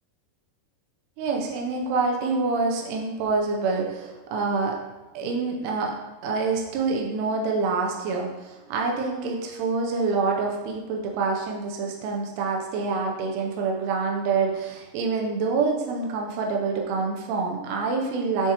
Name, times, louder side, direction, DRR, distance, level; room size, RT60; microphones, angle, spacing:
voice 1, 1.2-4.8 5.1-5.9 6.2-18.5, right 4 dB, 85° right, 0 dB, 2.7 m, -26 dB
7.2 x 4.6 x 2.8 m, 1.1 s
omnidirectional pair, 4.8 m